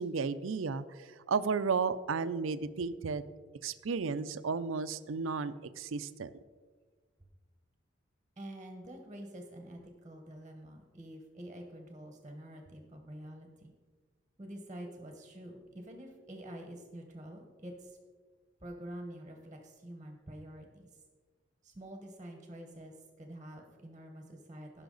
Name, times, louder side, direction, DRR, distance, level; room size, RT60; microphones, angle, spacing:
voice 1, 0.0-3.3 3.6-6.3, right 5 dB, 80° right, 13 dB, 0.5 m, -33 dB
voice 2, 8.4-13.7 14.4-18.0 18.6-21.0 21.6-24.8, right 1 dB, 20° right, 3 dB, 1.1 m, -47 dB
16.5 x 5.7 x 3.9 m, 1.5 s
head